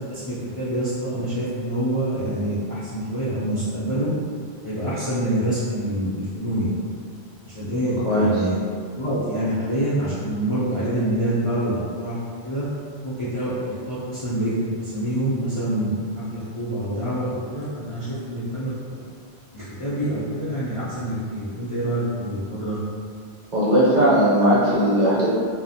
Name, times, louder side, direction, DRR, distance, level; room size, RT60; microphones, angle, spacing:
voice 1, 0.1-4.1 4.6-6.7 7.4-8.5 9.0-12.2 12.4-12.7 13.0-18.7 19.5-22.8, right 1 dB, 45° left, -11 dB, 0.4 m, -26 dB
voice 2, 8.0-8.4 23.5-25.3, equal, 50° right, -9 dB, 0.7 m, -18 dB
2.4 x 2.1 x 2.6 m, 2.1 s
omnidirectional pair, 1.1 m